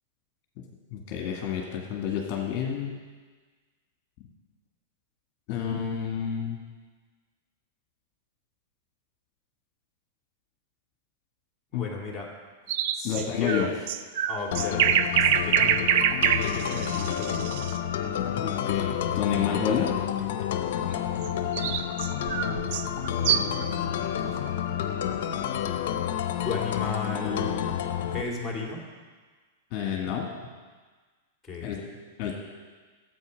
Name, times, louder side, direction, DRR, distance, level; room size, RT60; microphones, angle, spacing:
voice 1, 0.9-2.9 5.5-6.6 11.7-11.9 13.0-13.7 18.4-19.9 24.0-24.1 29.7-30.3 31.6-31.8 32.2-32.3, left 8 dB, 40° left, 0 dB, 1.8 m, -29 dB
voice 2, 11.7-12.3 12.9-13.7 14.3-16.1 16.4-17.6 20.8-21.0 26.4-27.7 28.1-28.8 31.4-31.9, left 4 dB, 10° left, -2 dB, 2.4 m, -35 dB
sound 1, 12.7-17.8 21.2-23.6, right 9 dB, 55° right, 0.5 m, -25 dB
sound 2, 14.5-28.2, left 9 dB, 65° left, 0.8 m, -29 dB
11.5 x 7.9 x 5.2 m, 1.4 s
hypercardioid pair, 145°, 0 cm